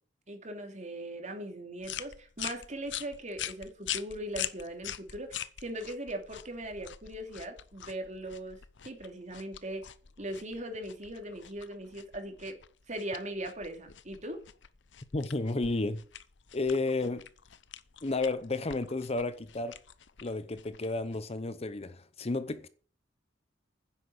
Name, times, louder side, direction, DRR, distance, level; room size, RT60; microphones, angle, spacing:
voice 1, 0.3-8.6 8.8-9.9 10.2-12.6 12.9-14.4, right 1 dB, 40° right, 2.9 m, -39 dB
sound 1, 1.8-21.4, left 11 dB, 85° left, 0.8 m, -44 dB
voice 2, 15.1-16.0 16.5-17.3 18.0-19.7 20.2-22.7, left 2 dB, 35° left, 0.8 m, -32 dB
10.0 x 8.0 x 7.9 m
head